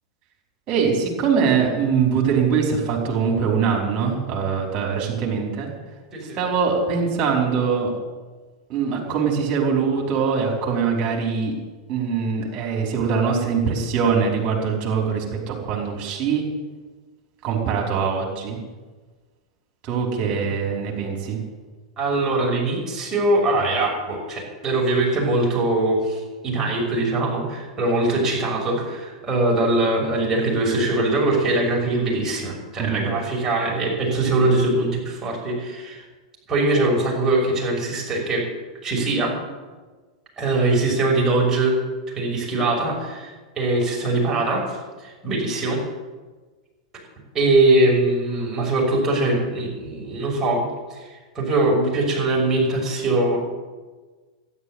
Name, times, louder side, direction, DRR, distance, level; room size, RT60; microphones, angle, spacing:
voice 1, 0.7-5.7 6.2-7.9 8.7-11.5 11.9-16.4 17.4-18.6 19.8-21.4 32.8-33.1, right 6 dB, 35° right, 0 dB, 5.0 m, -22 dB
voice 2, 22.0-36.0 36.5-38.4 38.8-39.3 40.4-41.8 42.1-45.8 47.3-51.1 51.3-53.4, right 2 dB, 20° right, -3 dB, 6.4 m, -22 dB
12.5 x 11.0 x 8.3 m, 1.3 s
figure-of-eight pair, 95°, 3 cm